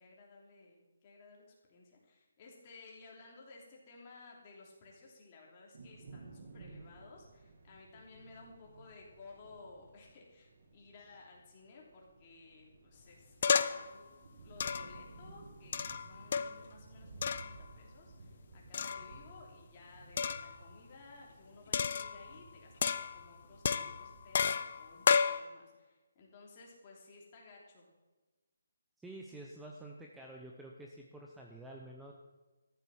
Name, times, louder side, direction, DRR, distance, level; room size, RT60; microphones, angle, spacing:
voice 1, 0.0-1.4 1.7-14.1 14.4-27.9, left 3 dB, 25° left, -2 dB, 3.2 m, -57 dB
sound 1, 5.7-24.3, right 3 dB, 45° right, 1.8 m, -56 dB
sound 2, 13.4-13.9 14.6-15.0 15.7-16.7 17.2-17.6 18.7-19.2 20.2-20.6 21.7-22.4 22.8-23.3 23.7-25.4, left 6 dB, 40° left, 0.6 m, -32 dB
voice 2, 29.0-32.1, right 1 dB, 5° right, -1 dB, 0.7 m, -49 dB
13.5 x 7.9 x 7.1 m, 1.2 s
hypercardioid pair, 170°, 0 cm